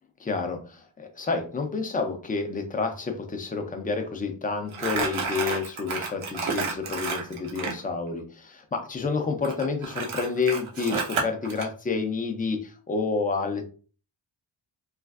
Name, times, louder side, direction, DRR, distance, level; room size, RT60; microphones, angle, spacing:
voice 1, 0.2-13.7, left 4 dB, 20° left, 6 dB, 0.4 m, -29 dB
Crumpling crinkling, 4.7-7.8 9.4-11.7, right 4 dB, 75° right, 0.9 m, -30 dB
3.2 x 2.4 x 2.4 m, 0.39 s
wide cardioid pair, 115°, 49 cm